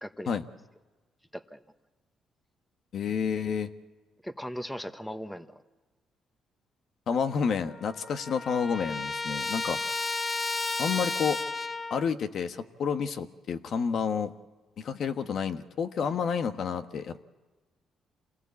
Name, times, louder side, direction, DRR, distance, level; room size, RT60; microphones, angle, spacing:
voice 1, 0.0-0.4 1.3-1.6 4.2-5.6, equal, 5° left, 10 dB, 1.3 m, -38 dB
voice 2, 2.9-3.7 7.1-9.8 10.8-11.4 11.9-14.3 14.8-17.2, left 6 dB, 65° left, 8 dB, 1.3 m, -30 dB
Trumpet, 7.3-7.4 7.7-12.1, left 3 dB, 25° left, 0.8 m, -33 dB
27.5 x 19.5 x 8.5 m, 1.3 s
cardioid pair, 90°, 0 cm